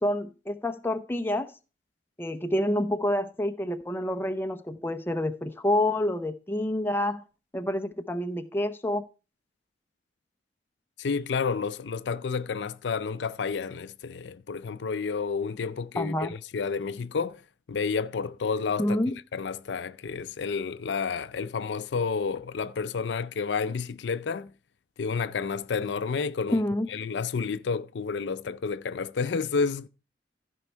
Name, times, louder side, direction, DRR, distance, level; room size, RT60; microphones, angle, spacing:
voice 1, 0.0-1.5 2.2-7.2 7.5-9.0 16.0-16.3 18.8-19.2 26.5-26.9, left 1 dB, 10° left, 0.6 m, -28 dB
voice 2, 11.0-17.4 17.7-19.0 19.3-24.5 25.0-26.6 26.9-29.9, left 5 dB, 80° left, 0.5 m, -30 dB
14.5 x 5.3 x 4.5 m
head